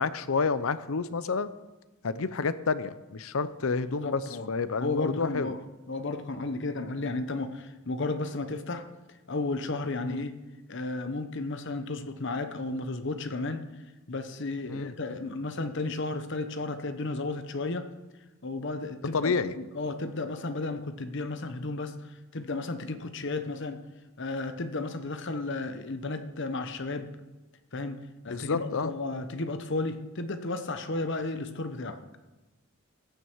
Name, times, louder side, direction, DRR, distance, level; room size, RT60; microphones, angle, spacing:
voice 1, 0.0-1.5 2.0-4.2 4.5-5.5 10.0-10.2 14.7-14.9 19.1-19.5 28.3-28.9, left 4 dB, 75° left, 14 dB, 0.6 m, -29 dB
voice 2, 3.7-4.5 4.8-5.6 5.9-8.9 9.3-10.3 10.7-13.6 14.1-17.9 18.4-23.8 24.2-27.1 27.7-32.0, left 2 dB, 55° left, 9 dB, 1.0 m, -33 dB
15.0 x 9.5 x 4.6 m, 1.1 s
head